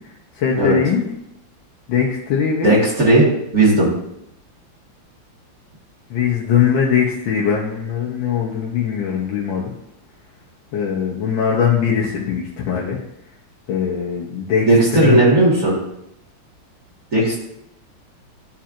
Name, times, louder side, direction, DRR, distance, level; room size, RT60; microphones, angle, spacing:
voice 1, 0.4-1.0 1.9-2.8 6.1-9.7 10.7-13.0 13.7-15.2, left 7 dB, 85° left, -3 dB, 1.6 m, -20 dB
voice 2, 2.6-3.9 14.7-15.8 17.1-17.4, right 2 dB, 45° right, -7 dB, 2.0 m, -15 dB
11.5 x 4.3 x 2.5 m, 0.77 s
omnidirectional pair, 2.0 m